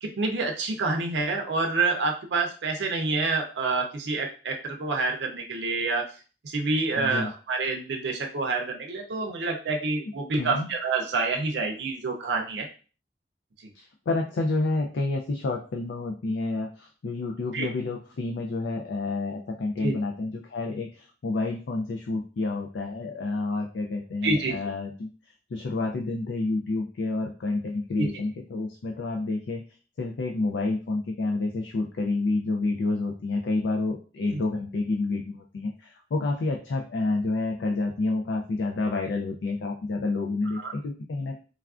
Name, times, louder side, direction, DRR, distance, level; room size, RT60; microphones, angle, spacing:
voice 1, 0.0-6.1 6.4-12.7 17.5-17.7 19.8-20.0 24.2-24.5 28.0-28.1 34.3-34.4 40.6-40.7, right 3 dB, 75° right, 2 dB, 0.5 m, -27 dB
voice 2, 7.0-7.3 10.4-10.7 13.7-25.1 25.5-29.6 30.0-41.4, left 3 dB, 85° left, 1 dB, 0.4 m, -29 dB
3.3 x 2.4 x 2.3 m, 0.37 s
head